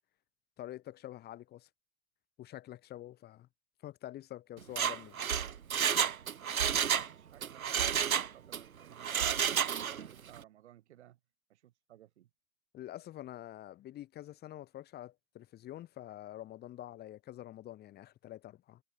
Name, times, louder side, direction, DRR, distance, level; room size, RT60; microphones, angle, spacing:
voice 1, 0.6-1.7 2.4-3.5 3.8-5.2 12.7-18.8, left 13 dB, 25° left, 4.6 m, -47 dB
Mechanisms, 4.6-7.1 7.4-8.6 9.0-10.1 10.4-10.5, right 8 dB, 85° right, 0.9 m, -30 dB
voice 2, 6.7-11.2 11.5-12.3, right 13 dB, 55° right, 6.7 m, -59 dB
hypercardioid pair, 125°, 41 cm